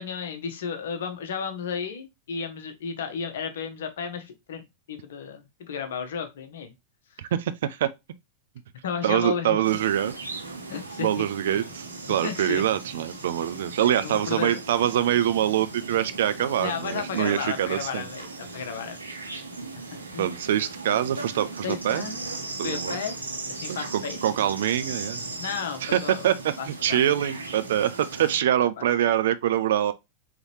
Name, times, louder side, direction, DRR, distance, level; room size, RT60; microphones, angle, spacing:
voice 1, 0.0-6.7 8.8-9.6 10.7-11.3 12.2-12.6 13.9-14.6 16.6-19.0 19.9-20.3 21.6-22.2 22.6-23.2 23.5-24.2 25.4-26.2 26.6-27.0 28.8-28.9, left 6 dB, 60° left, 0.8 m, -33 dB
voice 2, 7.2-7.9 9.0-10.1 11.0-18.1 20.2-22.1 22.6-23.0 23.7-25.3 25.8-29.9, right 11 dB, 60° right, 0.4 m, -25 dB
sound 1, 9.6-28.4, right 3 dB, 85° right, 1.4 m, -38 dB
3.8 x 3.1 x 3.0 m
figure-of-eight pair, 90°, 0 cm